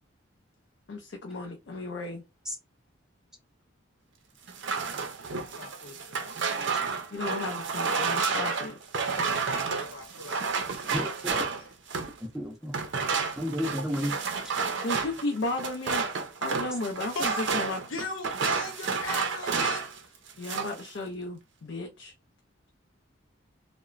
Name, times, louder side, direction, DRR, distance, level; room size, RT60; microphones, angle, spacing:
voice 1, 0.9-2.2 7.1-8.7 14.8-16.0 16.4-17.8 20.4-22.1, left 2 dB, 60° left, 0.4 m, -34 dB
sound 1, 4.5-12.2 12.7-20.0 20.3-20.8, right 5 dB, 65° right, 0.5 m, -30 dB
voice 2, 5.3-6.4 9.1-10.9 11.3-11.6 14.1-14.4 17.1-17.5 17.9-19.9, left 2 dB, 85° left, 0.9 m, -39 dB
voice 3, 6.5-6.9 10.9-11.4 12.2-12.8 13.3-14.1, equal, 5° right, 0.4 m, -32 dB
2.9 x 2.1 x 2.4 m
head